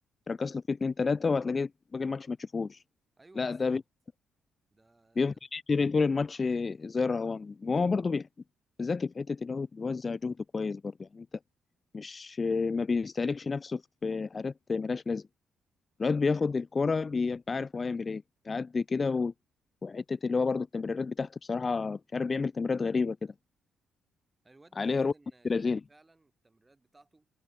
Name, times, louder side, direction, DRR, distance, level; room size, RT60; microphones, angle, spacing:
voice 1, 0.3-2.8 3.4-3.8 5.2-8.3 8.8-11.3 11.9-15.3 16.0-19.3 19.8-23.3 24.8-25.1 25.4-25.8, left 4 dB, 30° left, 0.4 m, -30 dB
voice 2, 3.2-3.8 4.7-5.4 24.4-27.3, right 2 dB, 20° right, 4.7 m, -61 dB
cardioid pair, 90°, 0 cm